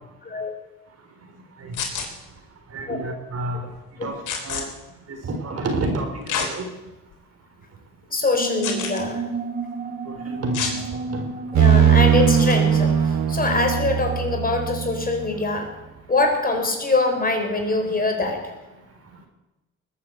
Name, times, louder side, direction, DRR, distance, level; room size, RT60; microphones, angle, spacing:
sound 1, 1.7-2.1 4.3-4.6 6.3-6.5 7.1-7.2 8.6-9.0 10.5-10.8 12.3-12.5, left 6 dB, 85° left, 3.5 m, -27 dB
voice 1, 2.7-3.6 4.0-4.2 4.4-4.6 5.2-6.1 6.4-6.7 10.3-10.8 11.1-11.3, right 2 dB, 55° right, 4 dB, 4.2 m, -28 dB
voice 2, 8.1-9.3 11.6-15.8 16.1-18.5, left 3 dB, 30° left, 4 dB, 3.9 m, -23 dB
sound 2, 8.3-13.6, right 4 dB, 30° right, 2.5 m, -32 dB
sound 3, 11.5-15.3, right 8 dB, 75° right, 1.8 m, -19 dB
20.0 x 8.9 x 7.9 m, 1.0 s
cardioid pair, 90°, 30 cm